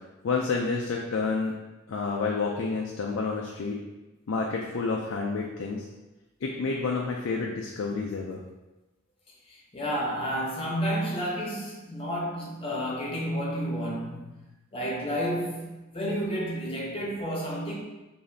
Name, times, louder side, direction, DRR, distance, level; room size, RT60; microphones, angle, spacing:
voice 1, 0.2-1.6 1.9-3.8 4.3-5.8 6.4-8.4, left 4 dB, 70° left, -1 dB, 0.4 m, -29 dB
voice 2, 9.5-14.4 14.7-17.7, equal, 25° left, -4 dB, 0.9 m, -31 dB
5.0 x 2.6 x 2.7 m, 1.1 s
head